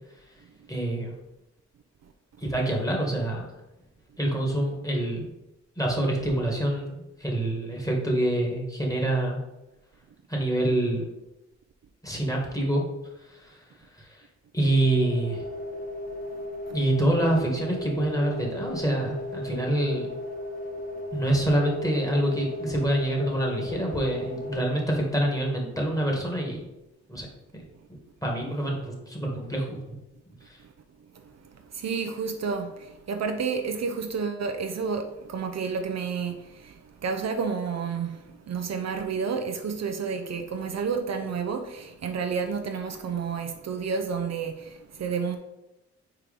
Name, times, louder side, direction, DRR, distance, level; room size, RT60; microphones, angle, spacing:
voice 1, 0.7-1.1 2.4-3.5 4.2-5.3 5.8-9.4 10.3-11.1 12.0-12.8 13.2-13.6 13.9-14.3 14.5-15.4 16.7-20.1 21.1-26.6 27.1-27.3 27.5-27.7 28.2-29.8 30.4-30.6, right 1 dB, 10° left, 2.0 m, -26 dB
sound 1, 14.9-24.7, left 1 dB, 30° left, 1.3 m, -36 dB
voice 2, 31.7-45.4, right 5 dB, 55° right, 0.7 m, -30 dB
4.8 x 4.4 x 5.2 m
cardioid pair, 80°, 31 cm